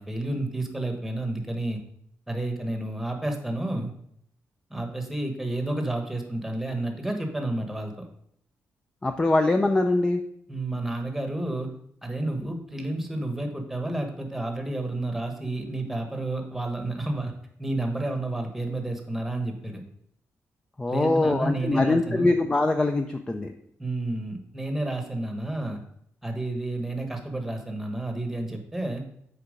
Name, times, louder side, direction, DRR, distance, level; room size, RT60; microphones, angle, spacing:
voice 1, 0.0-1.8 2.3-3.9 4.7-8.1 10.5-11.7 12.0-17.3 17.6-19.8 20.9-22.3 23.8-25.8 26.2-29.0, right 2 dB, 5° right, 3 dB, 1.2 m, -30 dB
voice 2, 9.0-10.2 20.8-23.5, left 2 dB, 15° left, 6 dB, 0.4 m, -23 dB
6.7 x 4.7 x 5.1 m, 0.71 s
cardioid pair, 130°, 5 cm